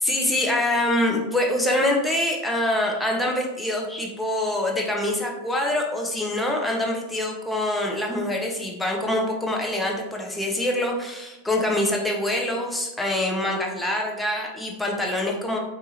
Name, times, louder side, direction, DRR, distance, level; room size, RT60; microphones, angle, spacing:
voice 1, 0.0-15.6, left 1 dB, 5° left, 0 dB, 0.7 m, -25 dB
4.7 x 2.7 x 2.8 m, 1.0 s
figure-of-eight pair, 90°, 0 cm